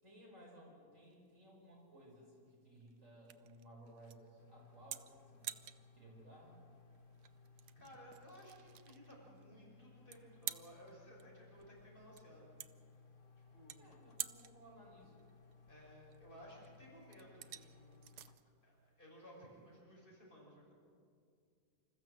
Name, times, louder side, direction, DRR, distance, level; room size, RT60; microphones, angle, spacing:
voice 1, 0.0-5.5 5.9-6.6 13.7-15.2, right 1 dB, 50° right, -2 dB, 5.4 m, -59 dB
sound 1, 1.0-19.8, right 11 dB, 80° right, 1.3 m, -52 dB
sound 2, 4.4-18.4, left 4 dB, 50° left, 1.5 m, -63 dB
voice 2, 7.7-12.5 13.5-13.9 15.7-18.1 18.6-20.7, equal, 30° left, -5 dB, 6.6 m, -58 dB
27.0 x 14.5 x 7.7 m, 2.2 s
omnidirectional pair, 1.7 m